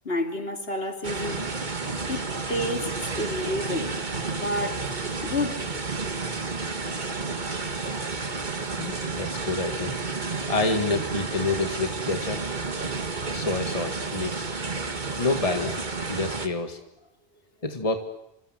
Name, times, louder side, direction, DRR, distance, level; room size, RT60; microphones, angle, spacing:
voice 1, 0.0-1.5 2.0-3.9 4.3-4.9 5.2-5.6 15.0-15.1, left 1 dB, 65° left, 5 dB, 3.1 m, -30 dB
sound 1, 1.0-16.5, right 3 dB, 45° right, 1.8 m, -31 dB
voice 2, 8.8-9.9 10.5-12.4 13.3-14.4 15.2-15.8 16.1-16.8 17.6-18.0, left 3 dB, 35° left, 6 dB, 2.0 m, -28 dB
28.5 x 26.5 x 8.0 m, 0.80 s
omnidirectional pair, 1.1 m